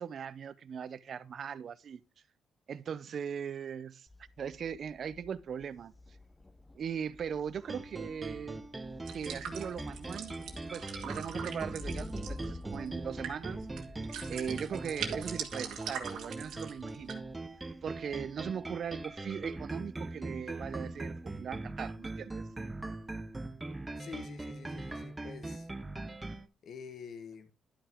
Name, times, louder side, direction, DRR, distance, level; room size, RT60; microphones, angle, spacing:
voice 1, 0.0-2.0 2.7-4.1 4.4-5.9 6.8-8.6 9.1-10.4 10.7-13.6 14.3-17.2 17.8-22.4, right 7 dB, 55° right, 0.5 m, -39 dB
Thunder, 4.1-22.1, left 2 dB, 15° left, 0.6 m, -51 dB
sound 1, 7.6-26.5, right 2 dB, 15° right, 0.8 m, -41 dB
sound 2, 9.1-17.1, right 7 dB, 85° right, 1.5 m, -43 dB
voice 2, 24.0-25.7 26.6-27.5, left 6 dB, 65° left, 1.1 m, -47 dB
11.5 x 5.7 x 3.5 m
cardioid pair, 90°, 0 cm